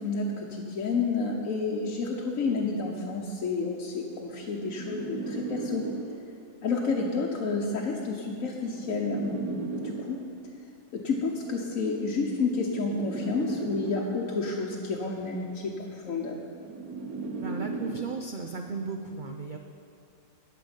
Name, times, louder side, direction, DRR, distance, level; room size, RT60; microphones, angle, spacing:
voice 1, 0.0-5.9 6.6-10.2 10.9-16.4, left 4 dB, 60° left, -2 dB, 1.2 m, -30 dB
sound 1, 4.1-6.5 7.5-10.5 11.5-14.5 15.5-18.5, right 3 dB, 70° right, 1.3 m, -37 dB
voice 2, 17.4-19.6, right 4 dB, 90° right, 3 dB, 0.4 m, -35 dB
9.2 x 6.8 x 8.8 m, 2.3 s
omnidirectional pair, 1.7 m